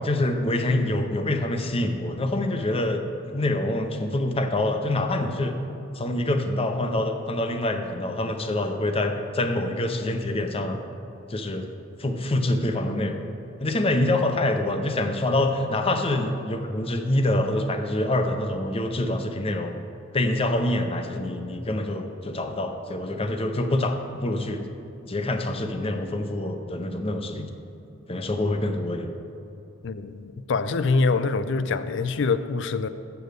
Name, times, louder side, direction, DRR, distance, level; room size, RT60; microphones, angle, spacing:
voice 1, 0.0-5.5 6.0-10.8 11.3-11.7 12.0-13.2 13.6-19.7 20.1-24.6 25.1-27.5 28.1-29.1, left 1 dB, 30° left, 6 dB, 0.7 m, -26 dB
voice 2, 29.8-32.9, left 4 dB, 65° left, 12 dB, 0.4 m, -25 dB
7.7 x 7.0 x 6.6 m, 2.8 s
head